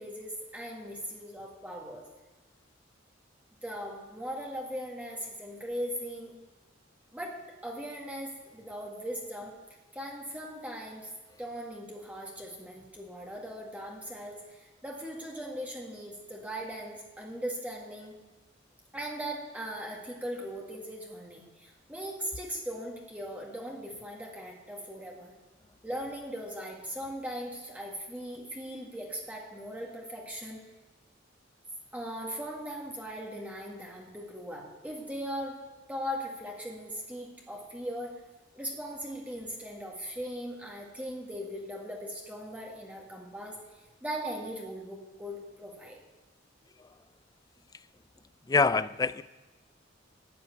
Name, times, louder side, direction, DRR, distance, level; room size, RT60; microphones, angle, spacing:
voice 1, 0.0-2.0 3.6-6.3 7.1-9.6 9.9-11.1 11.4-18.2 18.9-25.3 25.8-30.7 31.9-35.6 35.9-38.1 38.5-46.0, equal, 10° right, -2 dB, 1.8 m, -39 dB
voice 2, 48.5-49.2, left 4 dB, 20° left, 16 dB, 0.4 m, -25 dB
12.0 x 8.7 x 9.4 m, 1.2 s
head